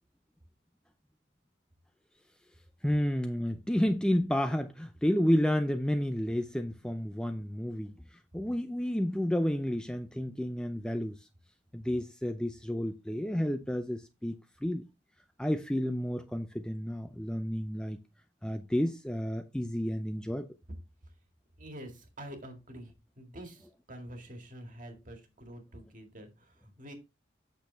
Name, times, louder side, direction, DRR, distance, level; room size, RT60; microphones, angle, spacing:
voice 1, 2.8-11.2 11.7-14.4 14.6-14.9 15.4-18.0 18.4-20.5, equal, 5° left, 0.4 m, -31 dB
voice 2, 21.6-26.9, right 1 dB, 40° right, 1.9 m, -47 dB
8.2 x 6.3 x 3.3 m
head